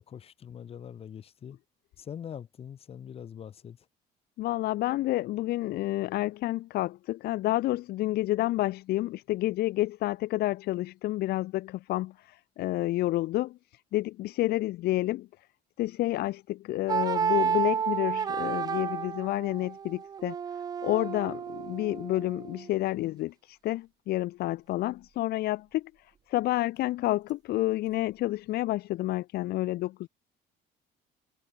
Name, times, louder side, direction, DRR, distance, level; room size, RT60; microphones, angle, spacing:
voice 1, 0.0-1.6 2.0-3.8, left 8 dB, 35° left, 6.3 m, -43 dB
voice 2, 4.4-13.6 13.9-15.3 15.8-20.4 20.8-25.9 26.3-30.1, left 16 dB, 65° left, 2.6 m, -29 dB
sound 1, 16.9-22.7, right 7 dB, 25° right, 0.4 m, -31 dB
cardioid pair, 170°, 17 cm